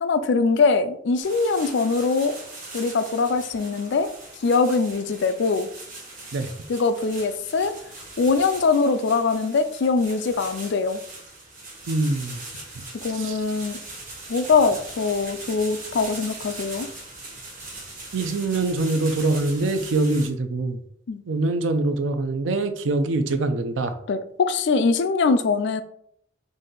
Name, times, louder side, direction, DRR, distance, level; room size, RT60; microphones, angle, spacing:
voice 1, 0.0-2.3 2.7-4.1 4.4-5.7 6.7-7.7 8.2-11.0 13.0-13.8 14.3-16.9 21.1-21.2 24.1-25.8, left 4 dB, 65° left, 10 dB, 0.4 m, -22 dB
sound 1, 1.2-20.3, right 2 dB, 45° right, 1.5 m, -40 dB
voice 2, 11.9-12.4 13.2-13.4 18.1-20.8 21.3-23.9, right 2 dB, 85° right, 9 dB, 0.5 m, -24 dB
4.0 x 2.6 x 3.8 m, 0.68 s
head